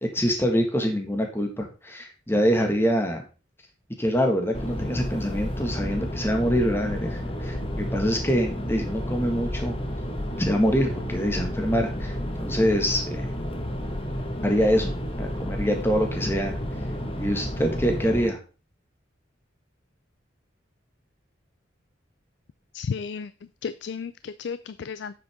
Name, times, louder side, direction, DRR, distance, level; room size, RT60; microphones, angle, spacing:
voice 1, 0.0-3.2 4.0-9.8 10.4-13.2 14.4-16.6 17.2-18.4, equal, 10° left, 3 dB, 1.7 m, -25 dB
sound 1, 4.5-18.3, equal, 30° left, 1.3 m, -31 dB
voice 2, 22.7-23.3 23.6-25.1, left 6 dB, 65° left, 15 dB, 0.4 m, -33 dB
9.1 x 7.6 x 3.6 m, 0.33 s
head